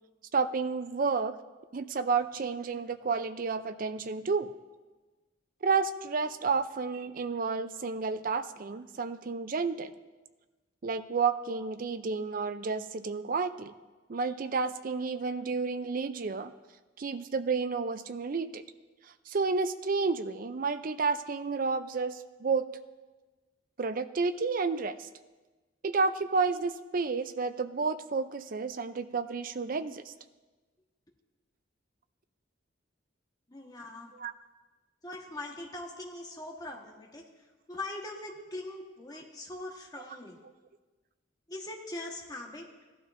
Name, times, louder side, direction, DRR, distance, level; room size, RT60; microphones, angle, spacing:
voice 1, 0.3-1.4 1.7-4.5 5.6-9.9 10.8-13.7 14.1-16.5 17.0-18.6 19.3-22.7 23.8-25.1 25.8-30.1 34.1-34.3, right 4 dB, 45° right, 12 dB, 0.5 m, -31 dB
voice 2, 33.5-34.1 35.0-37.2 37.7-40.4 41.5-42.7, left 2 dB, 20° left, 0 dB, 1.3 m, -41 dB
16.5 x 11.5 x 2.6 m, 1.2 s
head